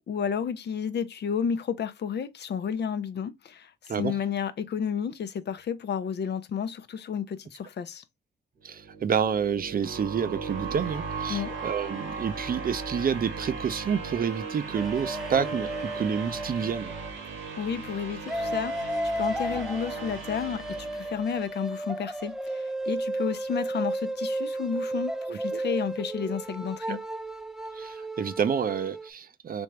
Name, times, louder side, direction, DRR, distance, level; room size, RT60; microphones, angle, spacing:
voice 1, 0.1-8.0 11.3-11.6 17.6-27.0, left 7 dB, 55° left, 0.6 m, -32 dB
voice 2, 8.6-16.9 25.3-25.6 26.9-27.0 27.7-29.6, right 7 dB, 45° right, 0.6 m, -29 dB
sound 1, 8.7-21.7, right 5 dB, 75° right, 1.3 m, -37 dB
sound 2, 14.7-17.3 18.3-29.1, right 1 dB, ahead, 0.6 m, -33 dB
3.5 x 2.7 x 3.1 m
supercardioid pair, 50°, 20 cm